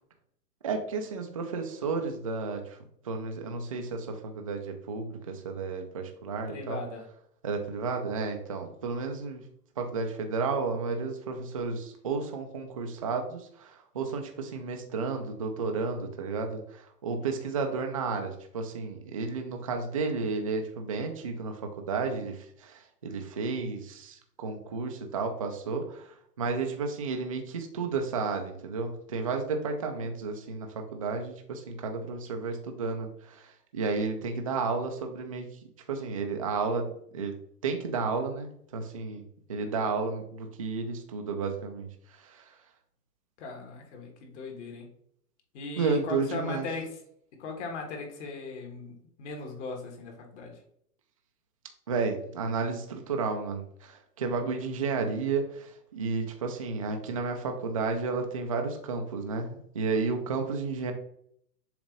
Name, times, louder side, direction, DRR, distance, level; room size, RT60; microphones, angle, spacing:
voice 1, 0.6-2.8 3.0-6.8 7.4-9.4 9.8-35.5 35.9-37.3 37.6-39.2 39.5-42.5 45.8-46.7 51.9-60.9, right 4 dB, 25° right, 4 dB, 0.3 m, -32 dB
voice 2, 6.5-7.0 17.2-17.5 30.0-30.1 43.4-44.9 45.5-46.9 47.4-50.5, left 3 dB, 45° left, 2 dB, 1.7 m, -38 dB
7.1 x 2.5 x 5.1 m, 0.68 s
hypercardioid pair, 145°, 47 cm